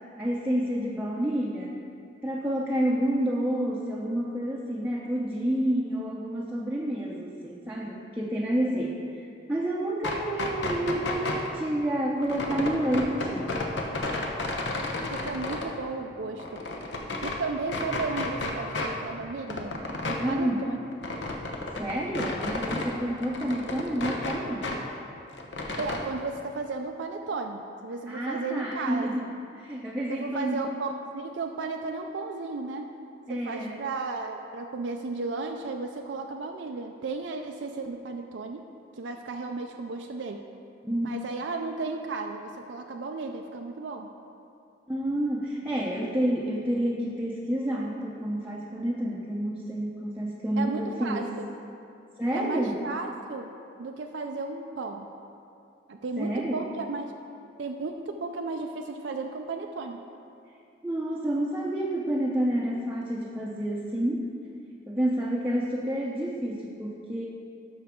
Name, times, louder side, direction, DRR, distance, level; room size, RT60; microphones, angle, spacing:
voice 1, 0.2-1.8 2.2-9.2 9.5-13.5 20.2-20.7 21.8-24.7 28.1-29.2 29.5-30.6 33.3-33.8 40.8-41.1 44.9-51.3 52.2-52.8 56.2-56.6 60.8-64.3 64.9-67.2, right 1 dB, 10° right, -4 dB, 0.6 m, -29 dB
sound 1, 9.9-11.5 12.2-15.7 16.1-17.4 17.7-18.9 19.2-22.9 23.2-24.8 25.1-26.0, left 2 dB, 70° left, 0.9 m, -32 dB
voice 2, 15.1-16.6 17.2-19.8 20.1-20.8 25.8-29.3 30.1-32.9 33.3-38.6 39.0-40.4 41.0-44.1 50.6-51.5 52.3-53.5 53.8-55.1 55.9-57.1 57.6-60.0, right 3 dB, 75° right, 3 dB, 0.4 m, -34 dB
12.5 x 5.9 x 3.7 m, 2.5 s
head